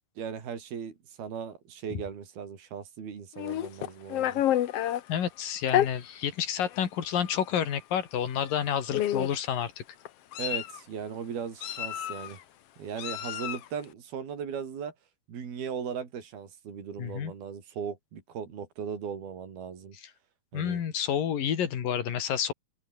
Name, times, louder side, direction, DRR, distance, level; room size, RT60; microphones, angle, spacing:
voice 1, 0.2-4.4 10.4-12.4 12.8-14.9 15.3-19.9 20.5-20.8, right 7 dB, 75° right, 5.8 m, -38 dB
Meow, 3.4-5.0 5.7-5.9 6.7-6.8 7.2-7.4 8.4-8.6 8.9-9.5 10.1-10.8 11.6-12.3 13.0-13.7, left 12 dB, 85° left, 1.3 m, -29 dB
voice 2, 5.1-9.8 17.0-17.3 20.0-20.1 20.5-22.5, left 9 dB, 65° left, 4.1 m, -29 dB
open air
omnidirectional pair, 4.4 m